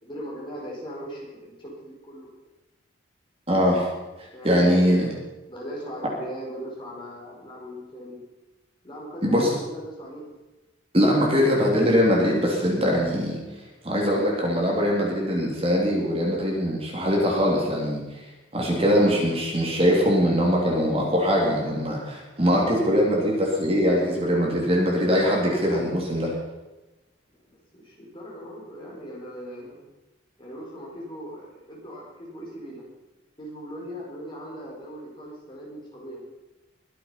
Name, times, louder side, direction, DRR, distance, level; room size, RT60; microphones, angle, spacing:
voice 1, 0.0-2.3 4.3-5.0 5.5-8.2 8.8-10.3 27.4-29.8 30.4-32.9 33.4-36.2, equal, 25° left, -4 dB, 4.6 m, -39 dB
voice 2, 3.5-3.9 4.2-5.1 9.2-9.6 10.9-13.4 13.8-18.2 18.5-26.3, equal, 30° right, -2 dB, 3.0 m, -22 dB
22.0 x 7.6 x 5.7 m, 1.0 s
head